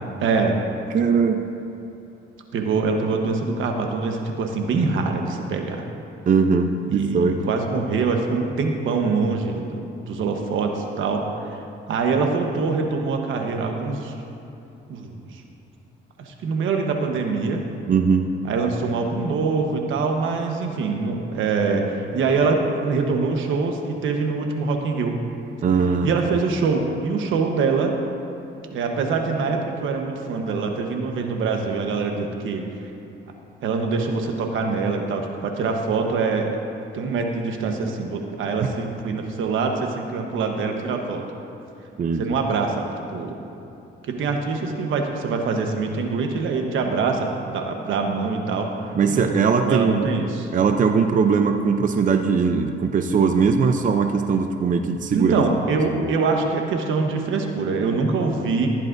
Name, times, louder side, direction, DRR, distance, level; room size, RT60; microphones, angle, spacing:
voice 1, 0.2-0.6 2.5-5.8 6.9-9.8 10.1-11.2 11.9-14.1 14.9-15.4 16.2-17.6 18.4-25.2 26.0-27.9 28.7-32.6 33.6-36.6 36.9-41.2 42.2-42.8 43.1-43.4 44.0-48.7 49.1-50.5 55.1-58.7, right 4 dB, 80° right, 3 dB, 1.1 m, -24 dB
voice 2, 0.9-1.4 6.3-7.4 17.9-18.3 25.6-26.1 42.0-42.2 48.9-50.1 50.5-55.4 56.0-56.1, right 5 dB, 40° right, 6 dB, 0.6 m, -20 dB
14.5 x 10.5 x 2.6 m, 2.9 s
cardioid pair, 90°, 20 cm